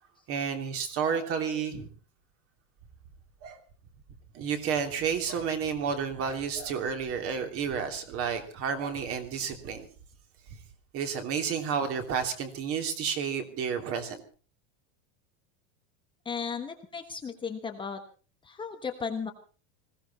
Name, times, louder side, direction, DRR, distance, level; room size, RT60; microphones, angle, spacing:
voice 1, 0.3-1.9 3.4-3.6 4.3-9.9 10.9-14.2, right 6 dB, 35° right, 6 dB, 3.1 m, -31 dB
voice 2, 16.2-18.0 18.4-19.3, left 6 dB, 15° left, 4 dB, 1.2 m, -35 dB
20.5 x 16.0 x 4.2 m, 0.38 s
supercardioid pair, 160°, 38 cm